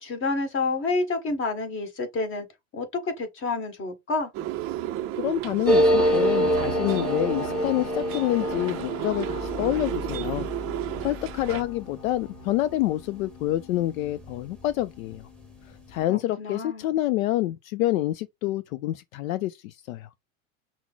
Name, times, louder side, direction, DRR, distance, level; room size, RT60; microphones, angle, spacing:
voice 1, 0.0-2.4 2.7-4.3 16.1-16.8, left 3 dB, 30° left, 1.6 m, -29 dB
sound 1, 4.3-11.6, right 13 dB, 35° right, 0.4 m, -33 dB
voice 2, 5.2-10.5 11.0-15.3 15.9-20.1, left 15 dB, 75° left, 0.5 m, -27 dB
sound 2, 5.7-14.8 15.1-15.2 15.4-16.0, equal, ahead, 1.2 m, -28 dB
5.8 x 2.1 x 3.9 m
supercardioid pair, 120°, 41 cm